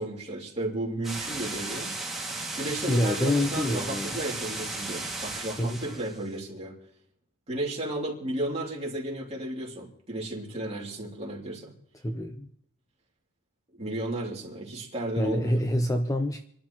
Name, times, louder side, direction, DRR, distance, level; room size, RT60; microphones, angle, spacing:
voice 1, 0.0-2.0 2.6-6.8 7.5-11.7 13.8-15.6, right 1 dB, 30° right, 2.7 m, -33 dB
sound 1, 1.0-6.2, right 2 dB, ahead, 2.1 m, -35 dB
voice 2, 2.9-4.1 5.6-5.8 12.0-12.5 15.2-16.4, left 1 dB, 15° left, 0.6 m, -26 dB
27.5 x 12.0 x 3.0 m
head